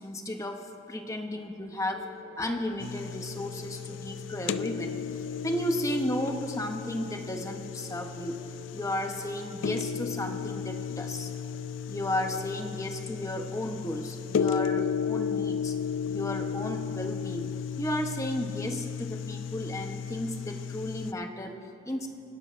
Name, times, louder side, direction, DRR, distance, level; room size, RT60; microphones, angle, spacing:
voice 1, 0.0-2.0 2.4-5.0 5.4-8.4 8.7-11.3 11.9-15.7 16.1-17.5 17.8-22.1, left 1 dB, 15° left, 4 dB, 0.8 m, -33 dB
sound 1, 1.9-14.3, left 4 dB, 20° right, 2.1 m, -48 dB
sound 2, 2.8-21.1, left 7 dB, 80° left, 0.3 m, -34 dB
24.5 x 11.5 x 2.5 m, 2.4 s
head